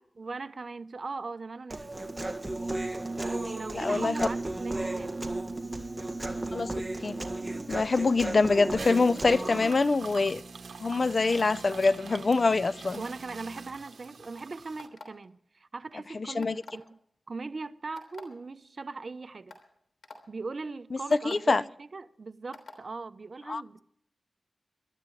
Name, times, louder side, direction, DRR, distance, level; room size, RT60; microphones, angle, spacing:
voice 1, 0.2-2.0 3.5-5.2 13.0-17.0 17.3-19.6 20.3-23.8, right 3 dB, 60° right, 0.8 m, -39 dB
Human voice, 1.7-9.7, right 2 dB, 20° right, 1.8 m, -34 dB
voice 2, 3.7-4.2 6.5-7.2 7.7-10.4 10.8-13.0 16.3-16.6 21.2-21.6 23.5-23.6, left 3 dB, 55° left, 0.5 m, -25 dB
sound 1, 8.6-14.9, right 4 dB, 80° right, 1.2 m, -44 dB
sound 2, 14.8-15.2 16.4-16.8 18.0-18.2 19.0-19.1 19.5-19.6 20.0-20.2 21.1-21.3 22.5-22.8, left 4 dB, 85° left, 3.3 m, -46 dB
25.0 x 12.5 x 3.2 m
wide cardioid pair, 65°, 0 cm